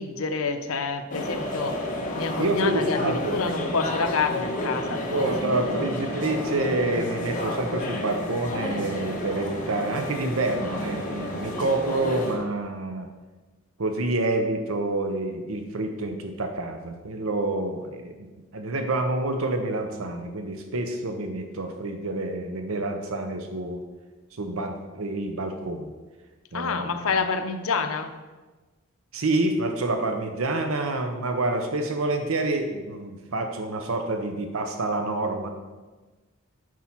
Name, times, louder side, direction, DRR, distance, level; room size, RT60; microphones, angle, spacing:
voice 1, 0.0-1.8 2.2-5.1 5.4-5.7 26.5-28.1, left 5 dB, 80° left, 7 dB, 0.7 m, -28 dB
sound 1, 1.1-12.4, left 1 dB, 35° left, 1.4 m, -31 dB
voice 2, 2.4-3.5 5.0-13.1 13.8-18.3 18.5-23.8 24.3-25.9 26.5-27.0 29.1-35.5, right 2 dB, 75° right, 5 dB, 0.8 m, -28 dB
8.4 x 4.6 x 5.9 m, 1.3 s
head